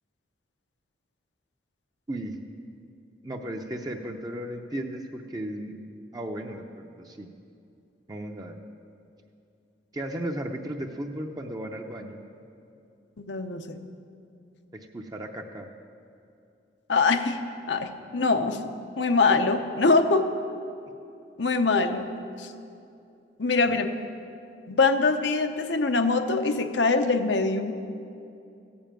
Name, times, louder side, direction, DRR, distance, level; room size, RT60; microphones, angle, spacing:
voice 1, 2.1-2.4 3.2-5.8 6.1-7.3 8.1-8.6 9.9-12.2 14.7-15.7 23.7-23.8, right 1 dB, 20° right, 3 dB, 0.6 m, -35 dB
voice 2, 13.3-13.8 16.9-17.4 17.7-18.6 19.0-20.3 21.4-22.1 22.4-22.5 23.4-23.9 24.7-27.7, left 3 dB, 80° left, 7 dB, 0.8 m, -23 dB
15.0 x 7.1 x 8.9 m, 2.6 s
head